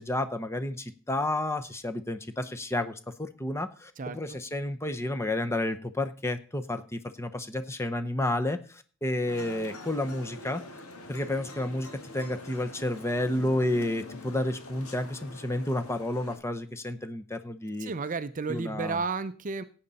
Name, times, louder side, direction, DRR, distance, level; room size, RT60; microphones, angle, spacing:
voice 1, 0.0-10.6 11.1-11.9 12.1-17.9 18.5-19.0, left 1 dB, 10° left, 8 dB, 0.8 m, -31 dB
voice 2, 4.0-4.4 17.8-19.6, right 4 dB, 35° right, 12 dB, 0.5 m, -32 dB
sound 1, 9.3-16.4, left 2 dB, 80° left, 2.0 m, -44 dB
17.0 x 8.7 x 4.1 m, 0.40 s
head